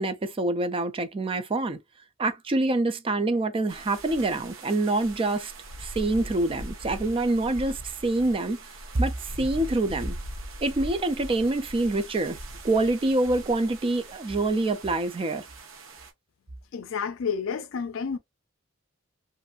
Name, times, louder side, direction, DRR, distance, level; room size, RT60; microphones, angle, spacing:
voice 1, 0.0-1.8 2.2-5.5 5.8-8.6 8.9-10.2 10.6-12.4 12.6-15.5, right 2 dB, 25° right, 0.4 m, -26 dB
sound 1, 3.7-16.1, right 1 dB, 85° right, 0.7 m, -41 dB
voice 2, 16.7-18.2, left 6 dB, 75° left, 0.4 m, -30 dB
2.5 x 2.5 x 2.3 m
head